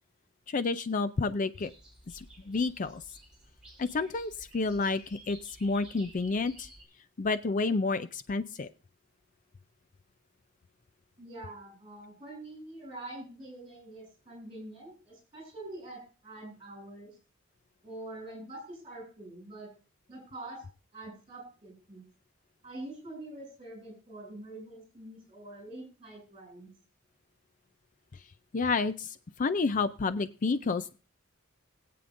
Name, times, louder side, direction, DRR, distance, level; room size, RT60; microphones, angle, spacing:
voice 1, 0.5-1.7 2.1-3.0 3.8-6.7 7.2-8.7 28.5-31.0, left 3 dB, 40° left, 12 dB, 0.4 m, -30 dB
sound 1, 1.6-6.8, right 1 dB, 5° right, 5.3 m, -54 dB
voice 2, 11.2-17.2 17.8-19.7 20.1-20.6 20.9-22.0 22.6-26.7, right 1 dB, 25° right, 0 dB, 7.7 m, -45 dB
20.5 x 8.6 x 2.6 m, 0.36 s
head